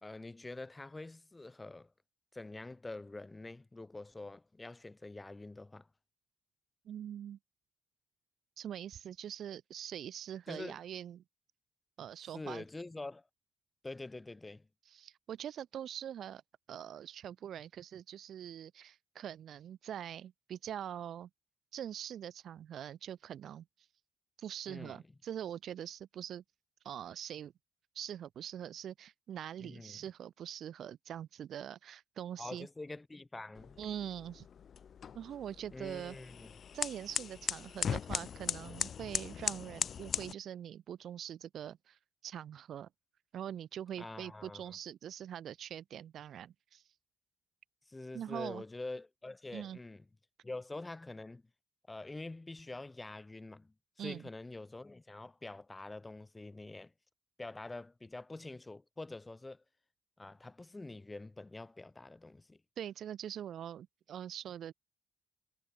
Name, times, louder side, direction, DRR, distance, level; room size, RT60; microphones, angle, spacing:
voice 1, 0.0-1.9 2.3-5.9 10.5-10.8 12.3-13.2 13.8-14.7 24.7-25.0 29.6-30.0 32.4-33.8 35.7-36.5 44.0-44.8 47.9-50.0 50.4-51.4 51.9-56.9 57.4-59.6 60.2-62.6, left 2 dB, 15° left, 2.5 m, -46 dB
voice 2, 6.9-7.4 8.6-11.2 12.0-12.6 14.9-16.4 16.7-21.3 21.7-23.6 24.4-26.4 26.8-27.5 27.9-32.7 33.8-34.5 35.1-36.2 36.7-42.9 43.3-46.8 48.1-48.6 49.5-49.8 54.0-54.3 62.8-64.7, right 10 dB, 65° right, 0.6 m, -43 dB
sound 1, 33.5-40.3, left 7 dB, 55° left, 1.0 m, -39 dB
cardioid pair, 90°, 0 cm